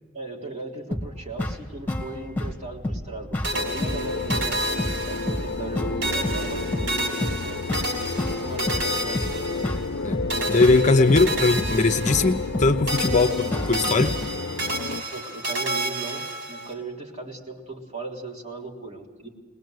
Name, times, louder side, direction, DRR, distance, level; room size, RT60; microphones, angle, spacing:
voice 1, 0.1-7.6 8.2-9.7 13.1-13.4 15.1-19.3, right 3 dB, 35° right, -1 dB, 3.6 m, -37 dB
sound 1, 0.9-14.3, left 1 dB, 10° left, 2.1 m, -31 dB
sound 2, 3.4-5.7 6.0-10.0 10.3-12.6 12.9-16.7, right 1 dB, 70° right, 5.8 m, -31 dB
sound 3, 3.5-15.0, left 4 dB, 85° left, 0.7 m, -31 dB
voice 2, 10.5-14.2, left 3 dB, 40° left, 8 dB, 0.8 m, -20 dB
21.0 x 20.5 x 7.9 m, 1.4 s
head